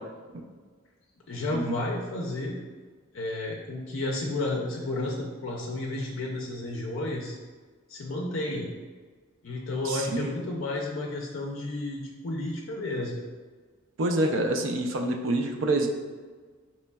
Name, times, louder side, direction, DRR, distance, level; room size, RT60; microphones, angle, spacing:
voice 1, 1.3-2.6 3.1-7.4 7.9-8.7 9.4-13.1, left 2 dB, 65° left, -1 dB, 0.4 m, -32 dB
voice 2, 9.8-10.3 14.0-15.9, right 2 dB, 65° right, 4 dB, 0.4 m, -27 dB
4.1 x 3.0 x 2.2 m, 1.4 s
head